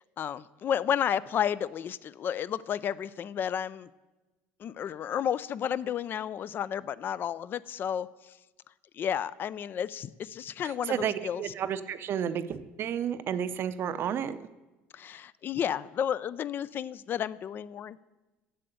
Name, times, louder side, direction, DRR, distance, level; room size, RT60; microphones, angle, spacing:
voice 1, 0.2-3.9 4.6-8.1 8.9-11.4 14.9-18.0, left 9 dB, 40° left, 18 dB, 0.4 m, -32 dB
voice 2, 10.6-14.4, right 9 dB, 50° right, 13 dB, 0.6 m, -32 dB
7.7 x 6.8 x 7.7 m, 1.1 s
supercardioid pair, 105°, 5 cm